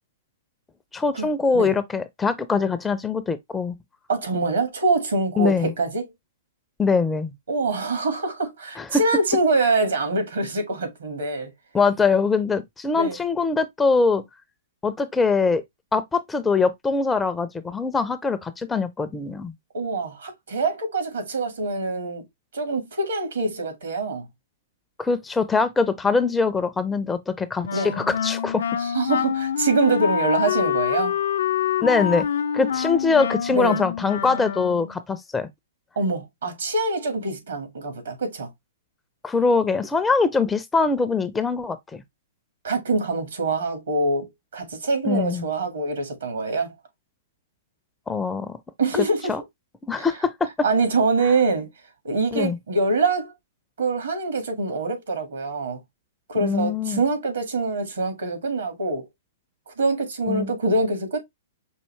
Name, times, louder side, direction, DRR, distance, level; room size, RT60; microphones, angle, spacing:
voice 1, 0.9-3.8 5.4-5.7 6.8-7.3 8.8-9.0 11.7-14.2 14.8-15.6 15.9-19.5 25.0-28.6 31.8-32.3 32.5-35.5 39.2-42.0 45.0-45.5 48.1-48.6 49.3-49.4 49.9-50.5 52.3-52.6 56.4-57.0 60.3-60.5, left 4 dB, 10° left, 0.5 m, -23 dB
voice 2, 4.1-6.0 7.5-11.5 12.9-13.2 19.7-22.2 22.5-24.3 27.7-27.9 28.8-31.1 33.5-33.8 35.9-38.5 42.6-46.7 48.8-49.3 50.0-50.1 50.6-51.7 52.0-53.3 53.8-55.8 56.3-59.0 59.7-61.2, right 3 dB, 70° right, 1.8 m, -24 dB
Wind instrument woodwind instrument, 27.6-35.0, left 8 dB, 65° left, 0.4 m, -26 dB
5.5 x 2.6 x 3.1 m
figure-of-eight pair, 110°, 0 cm